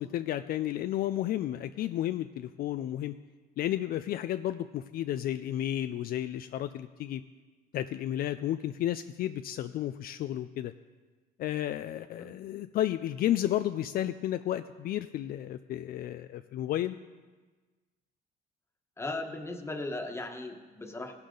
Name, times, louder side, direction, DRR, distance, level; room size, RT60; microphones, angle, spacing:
voice 1, 0.0-3.2 3.6-7.2 7.7-10.7 11.4-17.0, left 12 dB, 60° left, 10 dB, 0.4 m, -32 dB
voice 2, 19.0-21.1, left 2 dB, 15° left, 4 dB, 1.4 m, -37 dB
16.5 x 11.5 x 3.9 m, 1.3 s
cardioid pair, 110°, 17 cm